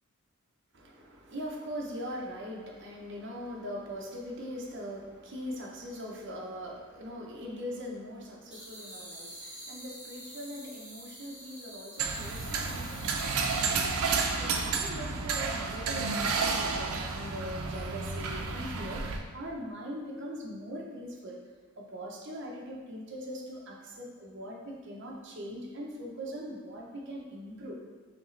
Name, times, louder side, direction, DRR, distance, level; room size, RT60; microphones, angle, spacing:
voice 1, 0.7-14.0 14.4-21.4 21.8-27.8, equal, 55° right, -1 dB, 0.8 m, -41 dB
sound 1, 8.5-14.3, equal, 5° right, 1.2 m, -47 dB
sound 2, 12.0-19.2, right 4 dB, 85° right, 0.5 m, -31 dB
5.1 x 2.9 x 3.2 m, 1.4 s
head